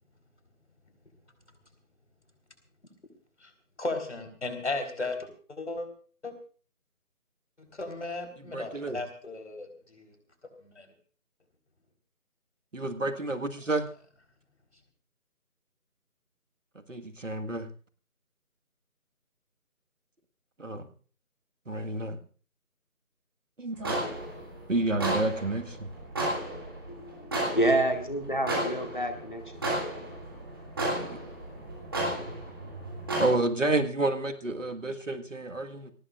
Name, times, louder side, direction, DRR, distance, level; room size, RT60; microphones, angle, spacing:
voice 1, 3.8-5.9 6.2-6.3 7.6-10.2 10.4-10.9, left 2 dB, 50° left, 5 dB, 4.1 m, -36 dB
voice 2, 8.4-9.0 12.7-13.9 16.9-17.7 20.6-20.9 21.7-22.2 23.6-24.0 24.7-25.9 28.5-28.6 31.0-31.2 33.2-35.9, right 2 dB, 55° right, 9 dB, 1.8 m, -30 dB
sound 1, 23.7-33.3, right 1 dB, 15° right, 3.1 m, -34 dB
voice 3, 26.9-29.6, right 1 dB, 35° left, 7 dB, 1.3 m, -28 dB
22.0 x 18.5 x 2.5 m, 0.42 s
figure-of-eight pair, 165°, 44 cm